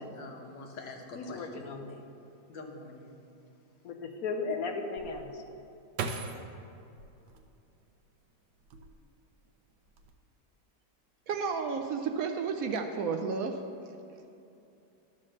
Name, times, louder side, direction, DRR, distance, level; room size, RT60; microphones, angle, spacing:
voice 1, 0.1-1.7 2.5-3.1, left 3 dB, 85° left, 2 dB, 1.7 m, -45 dB
voice 2, 1.1-2.1 3.8-5.4, left 4 dB, 65° left, 4 dB, 1.1 m, -36 dB
sound 1, 5.0-8.1 8.6-9.3 9.6-10.1, right 5 dB, 90° right, 1.3 m, -40 dB
voice 3, 11.3-13.6, right 5 dB, 70° right, 5 dB, 0.8 m, -32 dB
12.5 x 4.3 x 6.3 m, 2.8 s
omnidirectional pair, 1.9 m